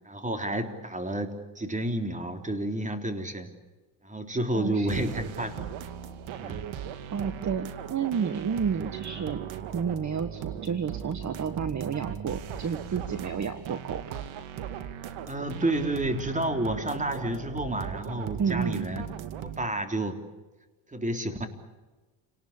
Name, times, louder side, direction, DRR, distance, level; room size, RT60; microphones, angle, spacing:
voice 1, 0.1-3.5 4.0-5.7 6.4-6.7 15.3-19.1 19.4-20.2 20.9-21.5, right 1 dB, 15° right, 6 dB, 3.6 m, -30 dB
voice 2, 4.5-5.2 7.1-14.2 18.4-18.9, right 6 dB, 35° right, 11 dB, 1.5 m, -31 dB
sound 1, 4.9-19.7, right 9 dB, 75° right, 2.1 m, -38 dB
29.0 x 19.0 x 8.7 m, 1.2 s
cardioid pair, 95°, 47 cm